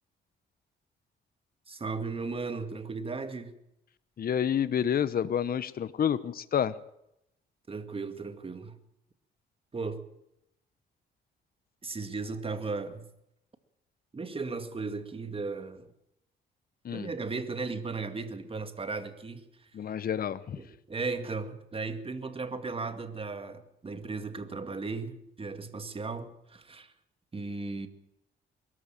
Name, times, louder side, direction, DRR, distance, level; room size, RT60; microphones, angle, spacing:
voice 1, 1.7-3.5 7.7-8.8 9.7-10.0 11.8-13.1 14.1-15.9 16.9-19.4 20.6-26.9 27.3-27.9, right 4 dB, 30° right, 2.2 m, -36 dB
voice 2, 4.2-6.8 16.8-17.1 19.7-20.6, left 8 dB, 50° left, 1.0 m, -29 dB
22.5 x 14.0 x 8.9 m
cardioid pair, 90°, 20 cm